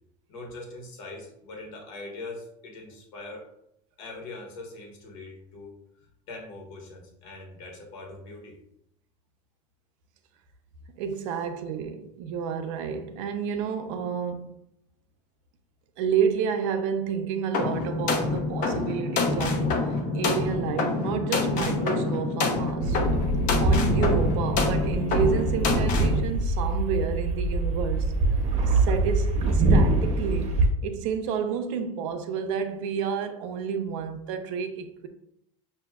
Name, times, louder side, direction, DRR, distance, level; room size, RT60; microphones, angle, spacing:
voice 1, 0.3-3.4 4.0-5.7 6.3-8.6, left 2 dB, 80° left, 1.4 m, -42 dB
voice 2, 11.0-14.6 16.0-23.0 23.6-28.1 28.7-35.1, right 6 dB, 80° right, 0.6 m, -30 dB
sound 1, 17.5-26.2, left 3 dB, 55° left, 0.8 m, -27 dB
sound 2, 22.8-30.7, right 2 dB, 45° right, 0.8 m, -24 dB
5.9 x 2.7 x 2.3 m
supercardioid pair, 110°, 16 cm